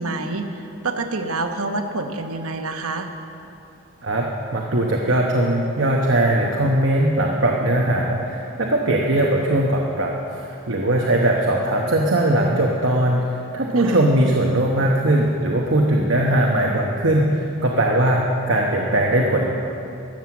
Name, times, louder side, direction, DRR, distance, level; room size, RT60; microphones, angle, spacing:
voice 1, 0.0-3.1 13.8-14.0, right 3 dB, 85° right, 6 dB, 1.0 m, -27 dB
voice 2, 4.5-19.5, right 1 dB, 60° right, -1 dB, 1.0 m, -20 dB
13.5 x 7.6 x 7.2 m, 2.7 s
head